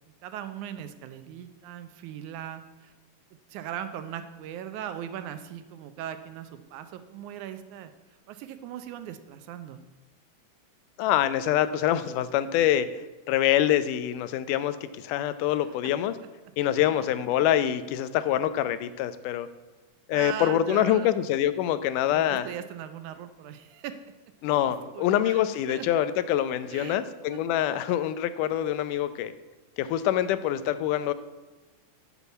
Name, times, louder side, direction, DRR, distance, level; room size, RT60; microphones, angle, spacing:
voice 1, 0.2-2.9 3.5-7.9 8.3-9.8 16.8-17.1 20.1-21.1 22.1-24.0 24.9-25.4 25.7-25.9 26.7-27.0 27.3-27.4, right 10 dB, 75° right, 10 dB, 2.0 m, -39 dB
voice 2, 11.0-13.0 13.3-16.1 16.6-19.5 20.1-22.5 24.4-29.3 29.8-31.1, left 11 dB, 80° left, 13 dB, 2.1 m, -25 dB
8.6 x 7.1 x 8.0 m, 1.2 s
omnidirectional pair, 3.7 m